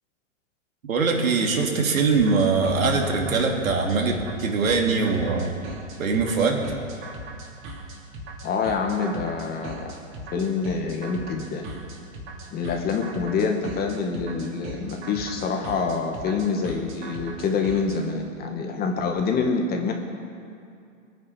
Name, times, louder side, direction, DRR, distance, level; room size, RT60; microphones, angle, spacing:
voice 1, 0.9-5.5 6.0-6.7, right 4 dB, 80° right, 1 dB, 2.8 m, -22 dB
sound 1, 2.1-18.0, right 2 dB, 30° right, 2.9 m, -38 dB
voice 2, 8.4-9.8 10.3-11.7 12.5-19.9, left 5 dB, 25° left, 3 dB, 1.8 m, -26 dB
22.5 x 9.5 x 5.8 m, 2.4 s
hypercardioid pair, 125°, 40 cm